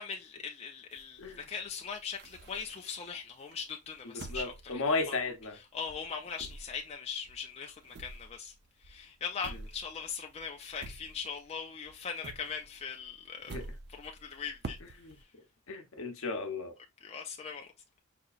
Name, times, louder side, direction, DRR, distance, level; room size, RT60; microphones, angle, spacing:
voice 1, 0.0-5.2 5.7-8.5 8.8-13.6 14.0-14.8 17.0-17.7, left 6 dB, 30° left, 0.4 m, -40 dB
sound 1, 0.9-3.1 3.5-5.6 5.9-11.6 11.8-15.2, right 3 dB, 50° right, 0.5 m, -48 dB
voice 2, 4.1-5.6 13.5-13.6 14.8-15.2 15.7-16.7, left 3 dB, 65° left, 0.8 m, -34 dB
5.0 x 2.8 x 2.4 m
head